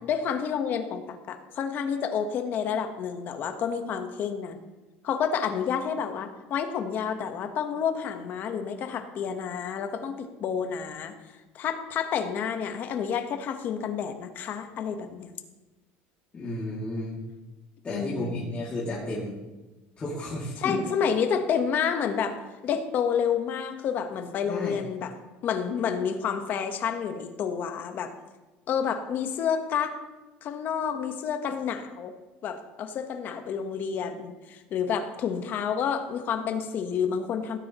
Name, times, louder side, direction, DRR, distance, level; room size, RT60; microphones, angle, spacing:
voice 1, 0.0-4.6 5.0-11.2 11.5-15.3 17.9-18.5 20.6-25.1 25.4-28.1 28.7-30.0 30.4-32.1 32.4-37.6, left 7 dB, 45° left, 7 dB, 1.1 m, -29 dB
voice 2, 16.3-17.2 17.8-19.3 20.0-20.8 24.5-24.8, left 1 dB, 25° left, -8 dB, 2.3 m, -32 dB
17.0 x 9.7 x 3.0 m, 1.2 s
cardioid pair, 140°, 5 cm